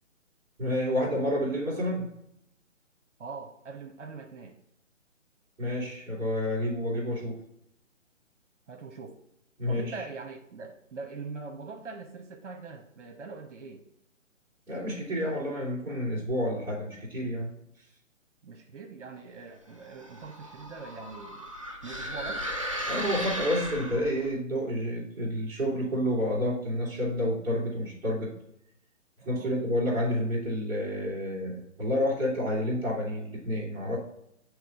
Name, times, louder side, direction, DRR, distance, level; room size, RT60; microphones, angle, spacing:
voice 1, 0.6-2.1 5.6-7.4 9.6-10.0 14.7-17.5 22.9-28.3 29.3-34.0, equal, 5° right, -9 dB, 1.7 m, -29 dB
voice 2, 3.2-4.6 8.7-9.2 9.7-13.8 18.4-21.5 21.8-22.5 29.2-29.6, right 4 dB, 60° right, 3 dB, 1.0 m, -42 dB
sound 1, 19.8-24.3, equal, 25° right, 0.4 m, -36 dB
8.3 x 3.1 x 3.6 m, 0.77 s
figure-of-eight pair, 150°, 39 cm